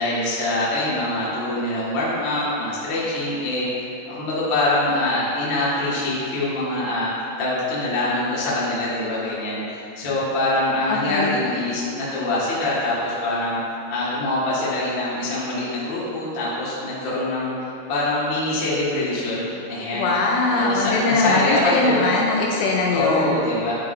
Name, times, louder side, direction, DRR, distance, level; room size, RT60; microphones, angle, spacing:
voice 1, 0.0-20.1 20.5-22.1 22.9-23.7, left 2 dB, 55° left, -9 dB, 1.3 m, -24 dB
voice 2, 10.9-11.4 19.9-23.4, left 3 dB, 80° left, -2 dB, 2.7 m, -21 dB
11.5 x 4.0 x 3.8 m, 2.8 s
omnidirectional pair, 5.3 m